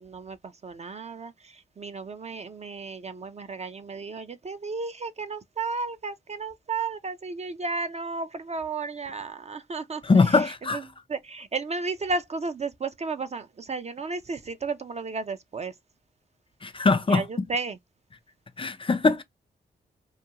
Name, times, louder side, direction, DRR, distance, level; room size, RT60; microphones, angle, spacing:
voice 1, 0.0-0.4 0.6-1.3 1.8-10.0 10.7-10.8 11.1-15.7 17.1-17.8, right 4 dB, 35° right, 0.4 m, -33 dB
voice 2, 10.0-10.8 16.6-17.2 18.6-19.2, left 4 dB, 25° left, 0.4 m, -21 dB
2.4 x 2.3 x 2.8 m
cardioid pair, 45°, 20 cm